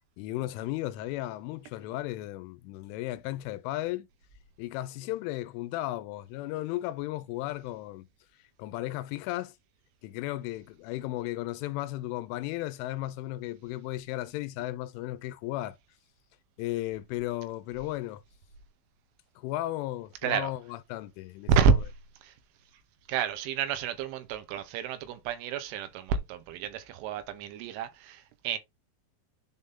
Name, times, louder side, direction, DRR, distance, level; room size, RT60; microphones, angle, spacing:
voice 1, 0.2-4.1 4.6-8.1 8.6-9.5 10.0-15.8 16.6-18.2 19.4-21.8, left 16 dB, 85° left, 3.1 m, -35 dB
voice 2, 21.5-21.8 22.2-22.3 23.1-28.6, right 6 dB, 85° right, 3.3 m, -29 dB
10.5 x 3.7 x 2.7 m
omnidirectional pair, 5.6 m